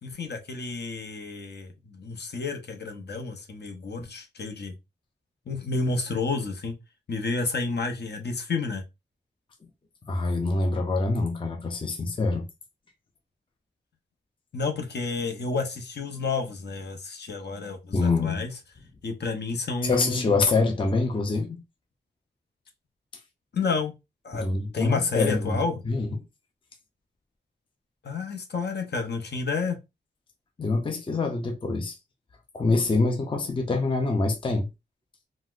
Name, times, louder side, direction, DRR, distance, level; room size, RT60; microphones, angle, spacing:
voice 1, 0.0-4.7 5.5-6.7 7.1-8.8 14.5-18.5 19.0-20.4 23.5-23.9 24.2-24.5 24.7-25.8 28.0-29.8, left 4 dB, 65° left, 0.7 m, -30 dB
voice 2, 10.1-12.5 17.9-18.4 19.8-21.6 24.3-26.2 30.6-32.0 32.5-34.7, left 3 dB, 25° left, 0.5 m, -25 dB
4.0 x 2.0 x 2.4 m
wide cardioid pair, 125°, 19 cm